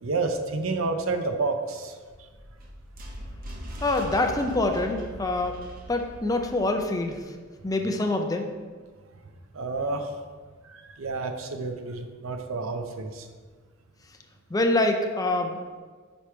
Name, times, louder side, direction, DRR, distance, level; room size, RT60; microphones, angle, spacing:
voice 1, 0.0-1.9 9.5-10.1 10.7-13.3, right 3 dB, 85° right, 6 dB, 0.6 m, -29 dB
sound 1, 2.1-7.2, right 1 dB, 45° right, 0.9 m, -41 dB
voice 2, 3.8-5.6 5.9-7.2 7.6-8.5 14.5-15.6, left 2 dB, 20° left, 4 dB, 0.5 m, -25 dB
5.2 x 4.8 x 4.3 m, 1.5 s
head